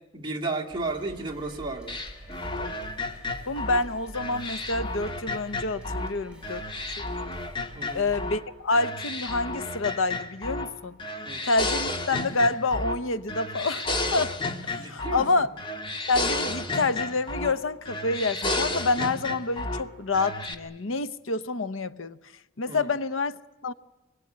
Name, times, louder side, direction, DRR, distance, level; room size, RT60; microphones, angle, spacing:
voice 1, 0.1-2.0 7.7-8.1 11.2-11.4 14.8-15.3 22.7-22.8, right 3 dB, 25° right, 2.3 m, -33 dB
sound 1, 0.7-8.3, equal, 5° right, 6.2 m, -47 dB
sound 2, 1.9-6.1 6.4-8.4 8.7-10.7 11.0-13.0 13.3-15.3 15.6-17.6 17.9-19.8 20.1-20.5, left 2 dB, 25° left, 1.6 m, -32 dB
voice 2, 3.5-6.7 7.0-7.1 7.9-11.0 11.4-14.4 14.6-15.5 16.1-22.2 22.6-23.7, left 3 dB, 75° left, 0.9 m, -28 dB
24.0 x 22.0 x 9.5 m
head